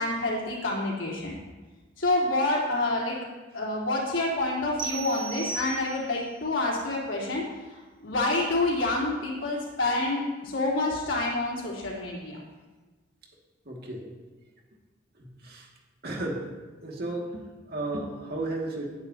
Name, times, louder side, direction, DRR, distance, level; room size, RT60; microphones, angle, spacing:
voice 1, 0.0-1.3 2.0-3.2 3.5-7.4 8.0-12.4, left 2 dB, 70° left, -5 dB, 3.8 m, -27 dB
sound 1, 4.8-6.3, right 4 dB, 25° right, 1.5 m, -36 dB
voice 2, 13.7-14.1 15.2-15.7 16.0-16.5 16.8-18.9, right 2 dB, 55° right, -1 dB, 2.3 m, -34 dB
19.5 x 9.8 x 2.9 m, 1.3 s
head